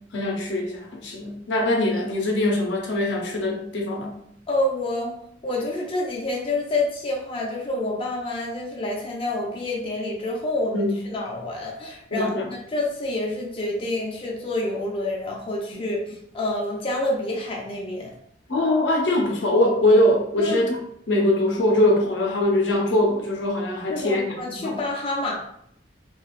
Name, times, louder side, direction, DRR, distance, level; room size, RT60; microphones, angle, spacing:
voice 1, 0.1-4.2 10.7-10.9 12.1-12.5 15.7-15.8 18.5-20.8 21.1-24.4 24.6-24.8, left 1 dB, 85° left, 1 dB, 0.6 m, -22 dB
voice 2, 4.5-5.1 5.4-18.1 20.4-20.6 23.9-25.4, left 2 dB, 30° left, -2 dB, 0.5 m, -28 dB
3.0 x 2.4 x 2.4 m, 0.72 s
head